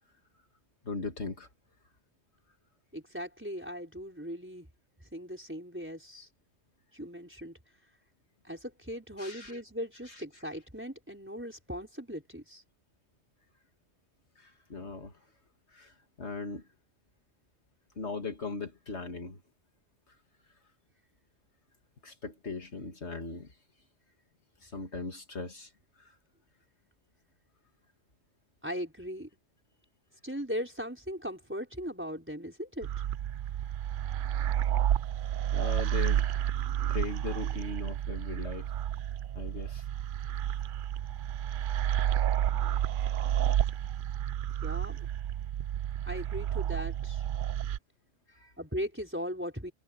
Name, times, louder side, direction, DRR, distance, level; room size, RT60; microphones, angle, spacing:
voice 1, 0.8-1.5 9.2-9.6 10.1-10.2 14.4-15.1 15.7-16.7 18.0-19.4 22.0-23.5 24.6-25.7 26.0-26.1 35.5-36.3 36.9-38.7 39.4-39.8 48.3-48.5, left 4 dB, 65° left, 2.4 m, -39 dB
voice 2, 2.9-4.7 5.1-6.3 6.9-7.5 8.4-12.6 28.6-29.3 30.2-32.9 44.6-45.0 46.0-47.2 48.6-49.7, equal, 10° right, 4.8 m, -38 dB
sound 1, 32.8-47.8, right 11 dB, 60° right, 0.6 m, -31 dB
omnidirectional pair, 1.2 m